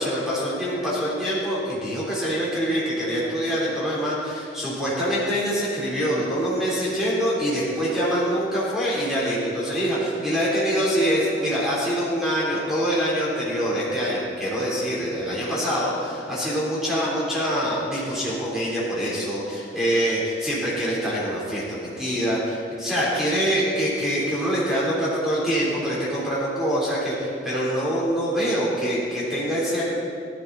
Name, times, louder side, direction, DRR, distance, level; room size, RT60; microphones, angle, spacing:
voice 1, 0.0-29.8, equal, ahead, -7 dB, 3.5 m, -25 dB
15.5 x 11.5 x 4.1 m, 2.4 s
head